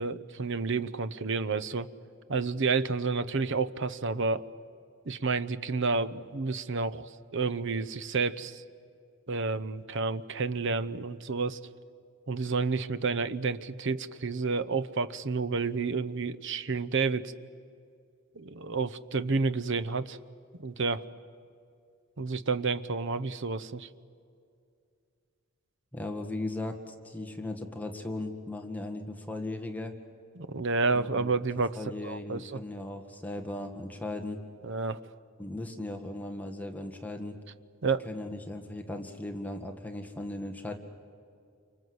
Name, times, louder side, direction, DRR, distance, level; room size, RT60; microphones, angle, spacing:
voice 1, 0.0-1.9 2.3-4.4 5.1-8.6 9.3-11.6 12.3-17.3 18.4-20.2 20.6-21.1 22.2-23.9 30.4-31.8 32.0-32.6 34.6-35.0 37.8-38.1, right 4 dB, 60° right, 14 dB, 0.8 m, -30 dB
voice 2, 25.9-29.9 30.9-31.3 31.8-34.4 35.4-37.4 38.0-40.7, left 2 dB, 10° left, 4 dB, 1.7 m, -37 dB
29.0 x 25.5 x 8.0 m, 2.4 s
head